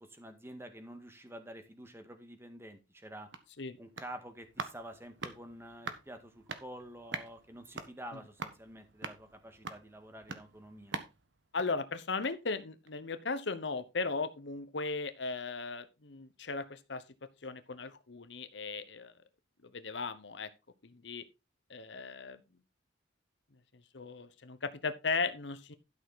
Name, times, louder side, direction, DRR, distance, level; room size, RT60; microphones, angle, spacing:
voice 1, 0.0-3.3 3.8-11.0, right 1 dB, 15° right, 1.8 m, -48 dB
sound 1, 2.9-12.5 12.8-12.9, right 4 dB, 70° right, 1.4 m, -46 dB
voice 2, 11.5-17.0 17.4-19.1 19.7-20.5 20.8-21.2 21.7-22.4 23.9-25.7, left 4 dB, 70° left, 1.0 m, -37 dB
12.0 x 6.7 x 4.1 m
head